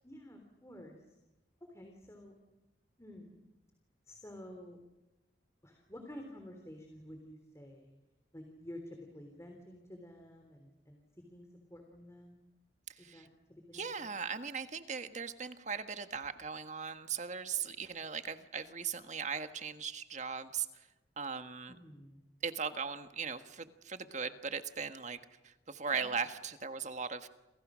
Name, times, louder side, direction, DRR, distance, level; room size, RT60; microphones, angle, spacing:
voice 1, 0.0-1.2 1.6-2.3 3.0-3.4 4.1-4.8 5.6-7.9 8.3-12.4 13.0-14.1 21.7-22.2 25.9-26.1, left 1 dB, 15° left, 3 dB, 3.5 m, -51 dB
voice 2, 12.9-13.3 13.7-20.9 21.2-21.7 22.4-25.2 25.4-27.3, right 6 dB, 40° right, 9 dB, 1.5 m, -39 dB
29.5 x 27.5 x 6.4 m, 1.0 s
head